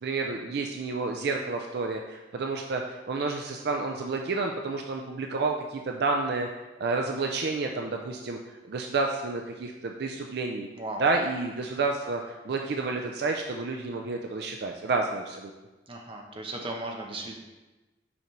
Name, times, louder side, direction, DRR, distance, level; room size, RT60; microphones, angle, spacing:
voice 1, 0.0-6.5 6.8-8.4 8.7-10.7 11.0-15.5, right 3 dB, 60° right, 2 dB, 0.4 m, -30 dB
voice 2, 10.7-11.1 11.7-11.8 15.9-17.4, right 2 dB, 30° right, 1 dB, 0.8 m, -37 dB
6.9 x 5.1 x 3.1 m, 1.1 s
head